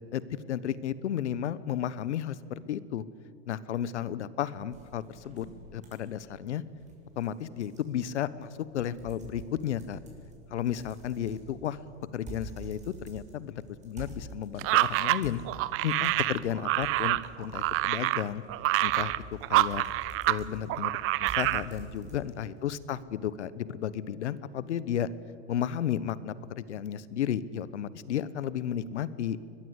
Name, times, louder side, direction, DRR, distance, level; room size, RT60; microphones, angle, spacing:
voice 1, 0.5-3.0 3.4-5.5 5.7-6.6 7.2-10.0 10.5-11.8 12.1-15.4 15.8-18.4 18.8-19.1 19.5-19.8 20.3-20.9 21.2-25.1 25.5-29.4, left 10 dB, 80° left, 17 dB, 1.1 m, -33 dB
sound 1, 4.7-22.6, right 3 dB, 20° right, 6.5 m, -49 dB
sound 2, 14.6-20.4 20.7-21.7, right 18 dB, 40° right, 0.7 m, -27 dB
22.5 x 21.0 x 8.2 m, 2.5 s
hypercardioid pair, 105°, 34 cm